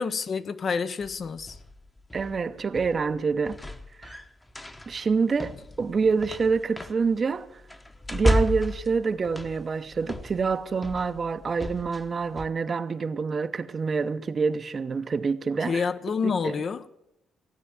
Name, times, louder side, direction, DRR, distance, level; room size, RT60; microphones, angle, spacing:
voice 1, 0.0-1.6 15.7-16.9, left 5 dB, 50° left, 0.7 m, -28 dB
sound 1, 1.0-12.5, equal, 15° left, 1.0 m, -33 dB
voice 2, 2.1-3.6 4.0-4.2 4.9-7.5 8.1-15.9 16.2-16.6, right 5 dB, 40° right, 0.8 m, -27 dB
16.5 x 9.2 x 7.6 m
cardioid pair, 90°, 0 cm